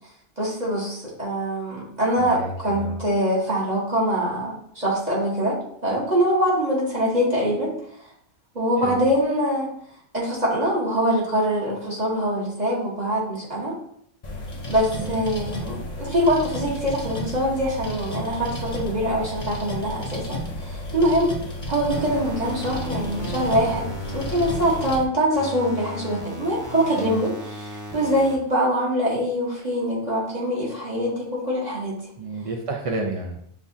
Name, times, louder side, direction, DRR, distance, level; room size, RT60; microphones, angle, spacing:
voice 1, 0.4-5.5 5.8-7.7 8.6-9.7 10.1-13.7 14.7-20.4 20.9-21.3 21.7-23.8 24.1-27.3 27.9-31.1 31.5-31.9, equal, 40° right, -6 dB, 1.2 m, -23 dB
voice 2, 2.2-3.0 8.8-9.0 15.0-15.2 26.9-27.2 32.2-33.4, right 2 dB, 60° right, 1 dB, 0.3 m, -30 dB
sound 1, 14.2-25.0, left 1 dB, 40° left, 0.8 m, -32 dB
sound 2, 21.9-24.9 25.3-28.3, left 1 dB, 20° right, 0.7 m, -36 dB
7.0 x 2.4 x 2.6 m, 0.67 s
omnidirectional pair, 1.2 m